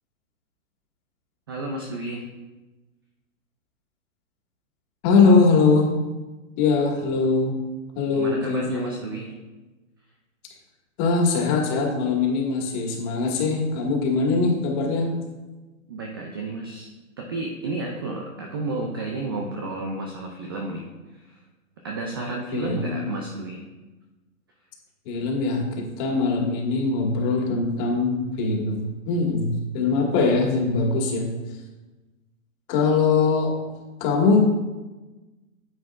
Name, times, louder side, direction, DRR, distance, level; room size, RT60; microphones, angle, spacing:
voice 1, 1.5-2.2 5.1-5.4 8.1-9.3 15.9-16.9 17.2-20.8 21.1-21.4 21.8-23.6, right 2 dB, 20° right, 1 dB, 0.3 m, -32 dB
voice 2, 5.0-5.9 6.6-7.6 8.0-9.0 11.0-15.2 22.5-23.1 25.1-31.4 32.7-33.5 34.0-34.4, left 4 dB, 35° left, -1 dB, 1.9 m, -22 dB
9.6 x 7.4 x 2.5 m, 1.2 s
hypercardioid pair, 130°, 41 cm